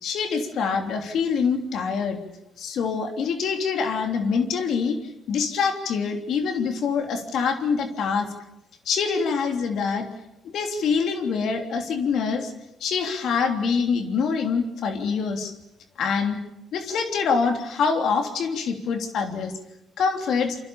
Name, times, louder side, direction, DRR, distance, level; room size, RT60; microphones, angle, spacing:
voice 1, 0.0-2.2 2.6-5.0 5.3-8.3 8.8-10.1 10.4-12.5 12.8-15.5 16.0-16.4 16.7-19.6 20.0-20.6, left 5 dB, 70° left, 5 dB, 3.2 m, -25 dB
28.0 x 25.0 x 7.1 m, 0.85 s
cardioid pair, 90°, 0 cm